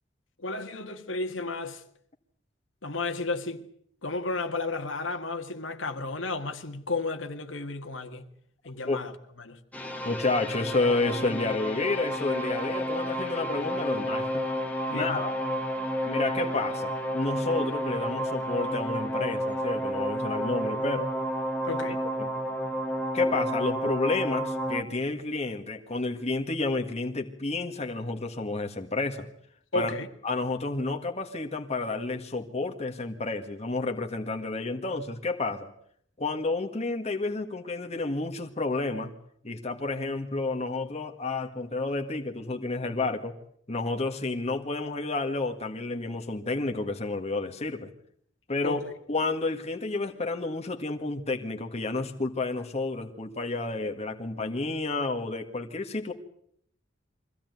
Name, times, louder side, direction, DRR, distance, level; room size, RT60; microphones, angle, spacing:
voice 1, 0.4-1.8 2.8-3.6 4.0-8.3 8.6-9.1 9.4-9.6 14.9-15.3 21.7-22.0 29.7-30.1 48.6-48.9, left 3 dB, 80° left, 1.9 m, -33 dB
sound 1, 9.7-24.8, equal, 10° left, 1.7 m, -31 dB
voice 2, 10.0-14.4 14.9-15.4 16.1-21.1 22.2-22.3 23.1-29.3 29.7-29.9 30.2-35.7 36.2-39.1 39.4-43.3 43.7-47.9 48.5-48.8 49.1-56.1, left 3 dB, 35° left, 1.8 m, -30 dB
23.5 x 16.0 x 9.4 m
head